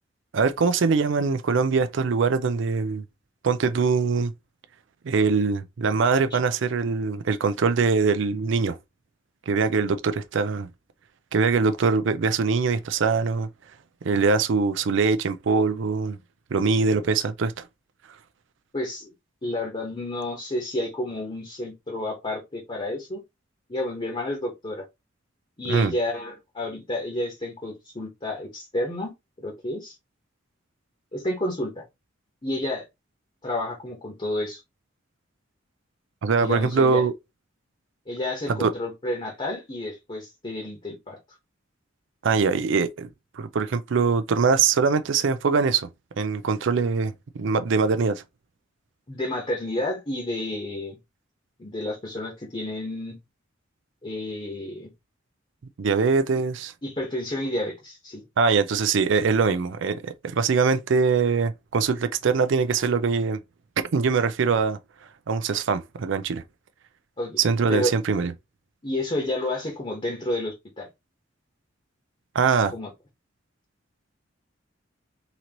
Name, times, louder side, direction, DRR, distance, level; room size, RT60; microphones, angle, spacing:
voice 1, 0.3-3.0 3.4-4.3 5.0-8.8 9.5-10.7 11.3-13.5 14.0-16.2 16.5-17.6 25.7-25.9 36.2-37.1 38.5-38.7 42.2-43.1 43.4-45.9 46.2-48.2 55.8-56.7 58.4-63.4 63.9-64.8 65.3-66.4 67.4-68.3 72.3-72.7, right 5 dB, 70° right, 0.4 m, -22 dB
voice 2, 18.7-19.1 19.4-23.2 23.7-24.8 25.6-30.0 31.1-31.8 32.4-32.8 33.4-34.6 36.3-37.0 38.1-41.2 49.1-51.0 51.6-53.2 54.0-54.9 56.8-58.2 67.2-67.9 68.8-70.9 72.7-72.9, left 1 dB, 30° left, 1.2 m, -30 dB
3.9 x 3.0 x 2.9 m
head